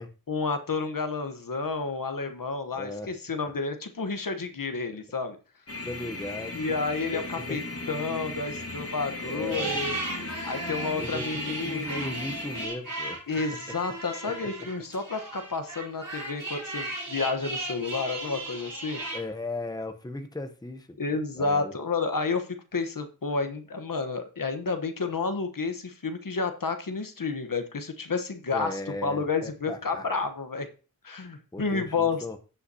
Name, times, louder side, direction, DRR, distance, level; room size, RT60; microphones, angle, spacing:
voice 1, 0.3-5.4 6.5-7.6 7.9-10.0 10.4-12.0 13.3-19.0 21.0-30.7 31.0-32.2, left 4 dB, 65° left, 7 dB, 1.1 m, -30 dB
voice 2, 2.7-3.1 5.8-6.6 7.1-7.6 9.2-9.8 11.0-13.2 14.2-14.5 19.1-21.9 28.5-30.1 31.5-32.4, left 2 dB, 10° left, 6 dB, 0.8 m, -37 dB
sound 1, 5.7-12.7, left 2 dB, 40° left, 1.4 m, -37 dB
sound 2, 9.4-19.2, right 2 dB, 65° right, 4.8 m, -36 dB
16.0 x 5.7 x 2.8 m, 0.35 s
wide cardioid pair, 60°, 35 cm